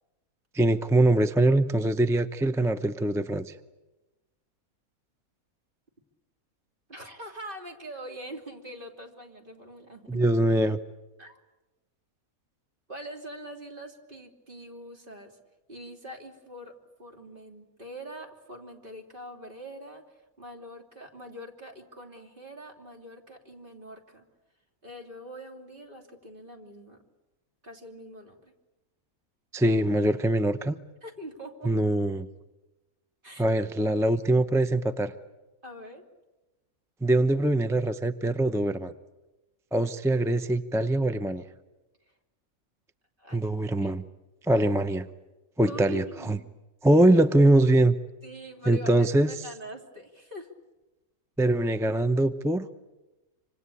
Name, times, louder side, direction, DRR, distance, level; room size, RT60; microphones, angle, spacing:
voice 1, 0.5-3.5 10.1-10.8 29.5-30.8 31.6-32.3 33.4-35.1 37.0-38.9 39.7-41.4 43.3-44.0 44.4-45.1 45.6-46.4 46.8-47.9 48.7-49.3 51.4-52.7, right 1 dB, 5° right, 10 dB, 0.4 m, -23 dB
voice 2, 6.9-10.3 11.2-11.4 12.9-15.4 15.7-24.2 24.8-27.0 27.6-28.5 31.0-31.8 33.2-33.4 35.6-36.0 43.2-43.9 45.6-46.4 48.2-50.5, equal, 35° right, 2 dB, 3.2 m, -43 dB
26.0 x 26.0 x 8.5 m, 1.1 s
omnidirectional pair, 1.5 m